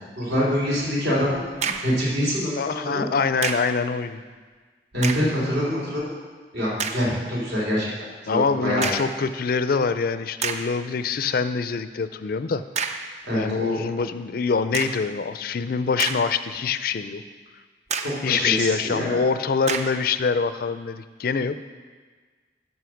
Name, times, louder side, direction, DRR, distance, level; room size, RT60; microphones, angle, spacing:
voice 1, 0.2-1.4 1.8-3.0 4.9-6.0 6.5-7.9 8.2-9.0 13.2-13.8 18.0-19.2, equal, 65° right, -5 dB, 3.5 m, -25 dB
sound 1, 1.5-2.0 3.4-3.8 4.9-5.4 6.0-6.1 6.8-7.1 8.8-9.2 9.9-10.0 10.4-10.8 12.7-13.1 14.7-15.1 15.7-16.6 16.9-17.0 17.9-18.3 19.7-20.1, right 5 dB, 40° right, 0.5 m, -29 dB
voice 2, 2.6-4.2 8.3-12.6 13.3-17.2 18.2-21.6, left 5 dB, 55° left, 12 dB, 0.4 m, -25 dB
13.0 x 5.5 x 5.9 m, 1.5 s
head